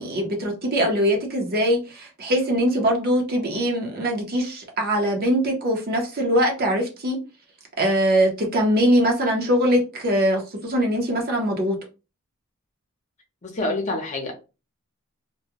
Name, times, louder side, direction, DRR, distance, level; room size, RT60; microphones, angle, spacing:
voice 1, 0.0-7.2 7.8-11.8, equal, 45° right, 0.7 m, -22 dB
voice 2, 13.4-14.3, left 2 dB, 35° left, 0.7 m, -27 dB
2.3 x 2.1 x 2.8 m
head